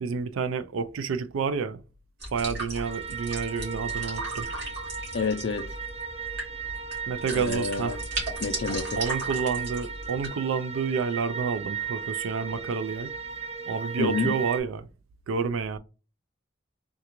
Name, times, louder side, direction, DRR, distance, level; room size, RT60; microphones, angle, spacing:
voice 1, 0.0-1.8 2.3-4.5 7.1-8.0 9.0-13.1 13.7-14.9 15.3-15.8, right 5 dB, 85° right, 0.4 m, -29 dB
sound 1, 2.2-10.3, right 2 dB, 55° right, 1.8 m, -36 dB
sound 2, 2.8-14.6, right 6 dB, 30° right, 0.5 m, -36 dB
voice 2, 5.1-5.7 7.3-8.0 8.4-9.0 14.0-14.3, left 4 dB, 60° left, 0.4 m, -29 dB
3.7 x 2.3 x 2.9 m
head